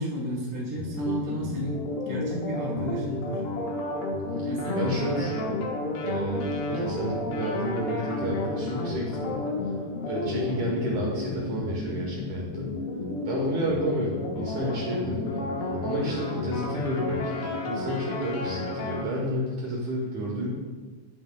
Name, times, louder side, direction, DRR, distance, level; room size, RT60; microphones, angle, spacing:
voice 1, 0.0-3.4 4.4-5.2, right 1 dB, 30° right, -5 dB, 0.3 m, -32 dB
sound 1, 0.8-19.0, left 2 dB, 80° left, 3.2 m, -31 dB
voice 2, 4.7-5.6 6.0-9.5 10.0-12.7 13.3-15.4 15.8-20.5, right 1 dB, 70° right, -3 dB, 1.9 m, -31 dB
9.6 x 8.7 x 2.2 m, 1.4 s
omnidirectional pair, 4.7 m